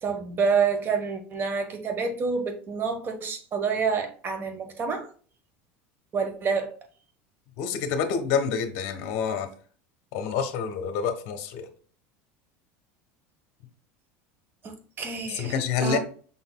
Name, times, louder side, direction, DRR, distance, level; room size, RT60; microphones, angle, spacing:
voice 1, 0.0-5.1 6.1-6.7 14.6-16.0, right 5 dB, 35° right, 1.1 m, -28 dB
voice 2, 7.6-9.5 10.1-11.7 15.4-16.0, left 6 dB, 60° left, 1.0 m, -27 dB
5.7 x 4.0 x 2.2 m
supercardioid pair, 125°, 7 cm